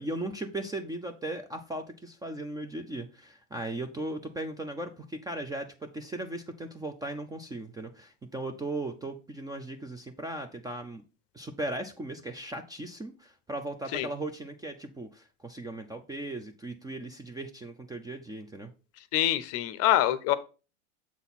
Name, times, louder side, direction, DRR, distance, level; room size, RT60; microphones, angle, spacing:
voice 1, 0.0-11.0 11.3-18.7, right 1 dB, 10° right, 7 dB, 0.4 m, -37 dB
voice 2, 19.1-20.3, left 13 dB, 40° left, 15 dB, 0.6 m, -25 dB
7.2 x 4.0 x 4.1 m, 0.33 s
hypercardioid pair, 95°, 39 cm